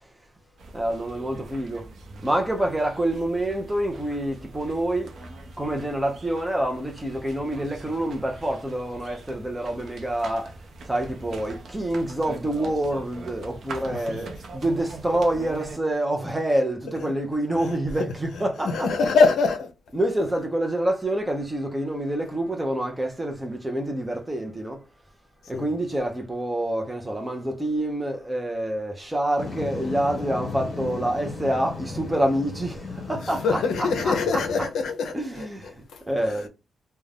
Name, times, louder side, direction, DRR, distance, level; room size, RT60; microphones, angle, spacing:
sound 1, 0.6-15.8, right 2 dB, 60° right, 0.6 m, -42 dB
voice 1, 0.7-1.9 2.2-5.1 5.6-10.6 10.9-18.9 19.9-24.9 25.5-34.7 35.1-36.5, right 1 dB, 10° right, 0.5 m, -27 dB
voice 2, 13.9-14.2 17.6-17.8 18.7-19.7 25.5-25.6 33.1-33.2 33.4-35.5 35.9-36.4, left 4 dB, 75° left, 0.5 m, -24 dB
sound 2, 29.4-34.7, left 3 dB, 40° left, 1.1 m, -35 dB
2.4 x 2.1 x 3.3 m
cardioid pair, 130°, 0 cm